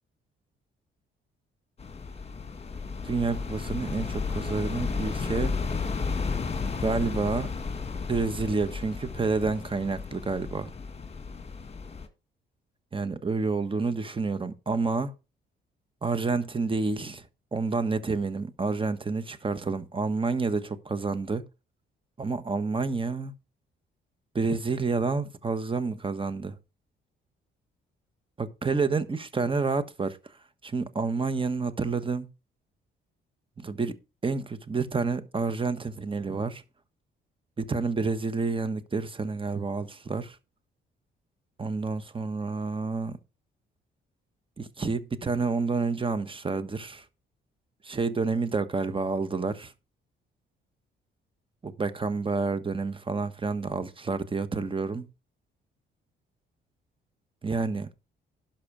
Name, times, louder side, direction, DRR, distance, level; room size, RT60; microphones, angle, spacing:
sound 1, 1.8-12.1, left 5 dB, 30° left, 1.8 m, -33 dB
voice 1, 3.0-5.5 6.8-7.5 8.1-10.7 12.9-15.1 16.0-17.2 17.5-21.4 22.2-23.3 24.3-26.5 28.4-30.3 30.6-32.3 33.6-34.0 34.2-36.6 37.6-40.4 41.6-43.2 44.6-47.0 47.8-49.7 51.6-55.1 57.4-57.9, right 4 dB, 25° right, 1.3 m, -29 dB
11.5 x 6.0 x 5.0 m
cardioid pair, 90°, 20 cm